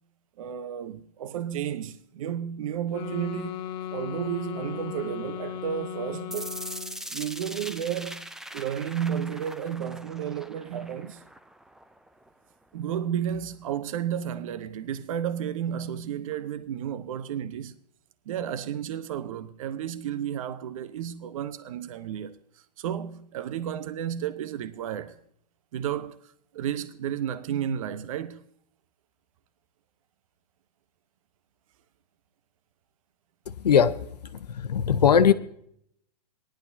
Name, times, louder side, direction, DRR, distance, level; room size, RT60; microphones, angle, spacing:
voice 1, 0.4-6.6 7.1-8.3 8.5-11.2 12.7-17.7 18.3-22.4 22.8-25.2 25.7-28.4, right 9 dB, 55° right, 0.9 m, -32 dB
sound 1, 2.9-7.1, left 10 dB, 35° left, 0.9 m, -36 dB
sound 2, 6.3-12.3, right 1 dB, ahead, 0.4 m, -41 dB
voice 2, 33.5-34.0 34.3-35.3, left 7 dB, 75° left, 0.8 m, -20 dB
18.5 x 11.5 x 2.6 m
hypercardioid pair, 120°, 21 cm